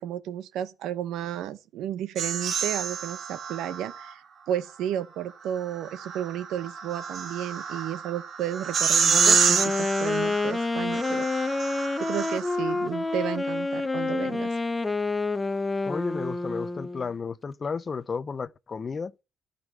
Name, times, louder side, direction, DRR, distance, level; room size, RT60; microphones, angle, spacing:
voice 1, 0.0-4.2 4.5-11.3 12.0-14.5, right 11 dB, 75° right, 0.8 m, -32 dB
sound 1, 2.2-4.1 5.6-12.8, right 6 dB, 50° right, 1.8 m, -28 dB
Wind instrument woodwind instrument, 9.0-17.1, left 3 dB, 15° left, 0.8 m, -28 dB
voice 2, 15.9-19.1, left 5 dB, 35° left, 0.5 m, -33 dB
11.0 x 5.2 x 7.2 m
cardioid pair, 90°, 0 cm